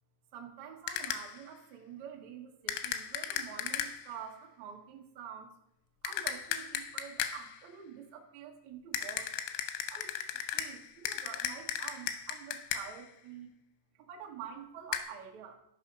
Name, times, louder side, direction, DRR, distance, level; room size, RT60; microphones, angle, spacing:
voice 1, 0.3-5.6 6.0-9.3 9.9-10.2 10.5-13.5 13.9-15.5, right 8 dB, 75° right, -1 dB, 1.6 m, -47 dB
sound 1, 0.9-1.4 2.7-4.1 6.0-7.6 8.9-13.1 14.9-15.0, left 9 dB, 85° left, 3.2 m, -36 dB
13.5 x 5.8 x 5.4 m, 0.77 s
omnidirectional pair, 5.9 m